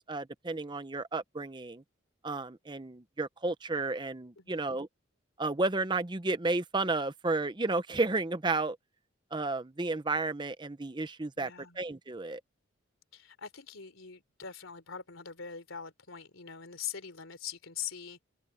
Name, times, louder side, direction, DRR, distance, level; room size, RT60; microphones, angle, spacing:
voice 1, 0.1-1.8 2.2-4.9 5.4-8.8 9.3-12.4, right 3 dB, 20° right, 0.7 m, -32 dB
voice 2, 11.4-11.8 13.1-18.2, left 8 dB, 85° left, 3.5 m, -43 dB
head